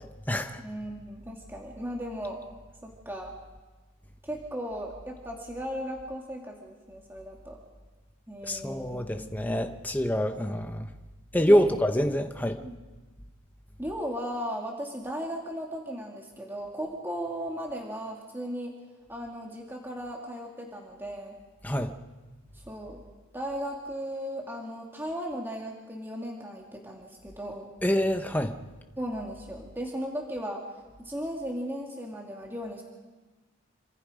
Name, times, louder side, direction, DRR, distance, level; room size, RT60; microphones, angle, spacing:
voice 1, 0.0-0.6 8.5-10.9 11.3-12.6 21.6-21.9 27.8-28.5, equal, 10° left, 6 dB, 1.0 m, -26 dB
voice 2, 0.6-2.4 3.1-3.3 4.2-7.6 8.3-9.4 11.5-11.6 12.6-12.8 13.8-18.7 19.1-21.3 22.5-23.0 23.3-27.7 29.0-30.6 31.0-32.8, equal, 10° right, -1 dB, 2.4 m, -36 dB
28.0 x 25.5 x 5.1 m, 1.3 s
head